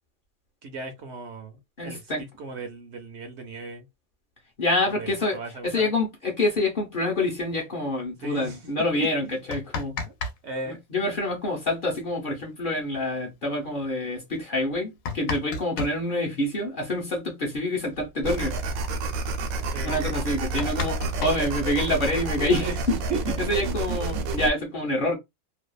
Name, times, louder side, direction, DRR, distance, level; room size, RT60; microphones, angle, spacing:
voice 1, 0.6-3.9 4.9-5.9 8.2-8.6 9.2-9.5 10.4-10.8 19.7-20.0 22.6-22.8 23.1-23.2, right 3 dB, 65° right, 0.8 m, -36 dB
voice 2, 1.8-2.2 4.6-5.4 5.6-9.9 10.7-18.6 19.8-22.9 23.4-25.2, left 1 dB, 50° left, 0.7 m, -27 dB
sound 1, 9.3-10.4 10.6-10.7 12.5-12.6 12.9-13.0 13.7-13.8 14.6-16.0 17.5-17.6 17.9-18.1 18.4-18.8 19.3-19.4 19.8-19.9 20.2-22.1 23.0-23.9, left 4 dB, 75° left, 1.0 m, -34 dB
sound 2, 18.2-24.5, right 3 dB, 85° right, 1.0 m, -29 dB
2.6 x 2.3 x 2.2 m
omnidirectional pair, 1.4 m